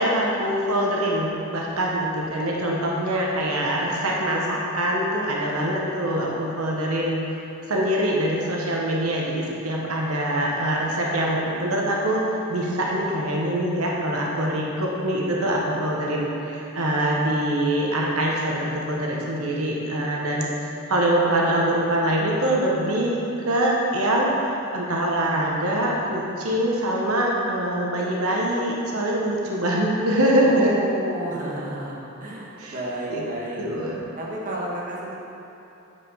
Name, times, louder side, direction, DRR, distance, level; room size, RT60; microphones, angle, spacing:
voice 1, 0.0-7.4 7.7-20.5 20.9-23.2 23.5-30.7 32.6-32.7 33.1-33.2 33.6-34.0, right 1 dB, 85° right, -3 dB, 1.1 m, -24 dB
voice 2, 30.4-33.7 34.2-35.1, right 1 dB, 40° right, -5 dB, 1.3 m, -31 dB
8.0 x 4.9 x 5.6 m, 2.9 s
head